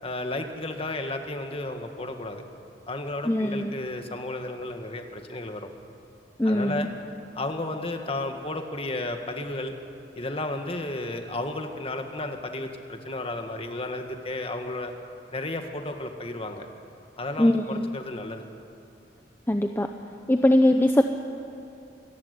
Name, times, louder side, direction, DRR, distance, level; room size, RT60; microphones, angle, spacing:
voice 1, 0.0-2.5 2.9-5.7 6.4-6.9 7.3-9.7 10.2-14.9 15.3-16.7 17.2-18.5, left 2 dB, 30° left, 5 dB, 1.9 m, -33 dB
voice 2, 3.2-3.8 6.4-6.9 17.4-17.9 19.5-19.9 20.3-21.0, left 1 dB, 10° left, 5 dB, 0.7 m, -21 dB
27.0 x 15.0 x 9.9 m, 2.6 s
head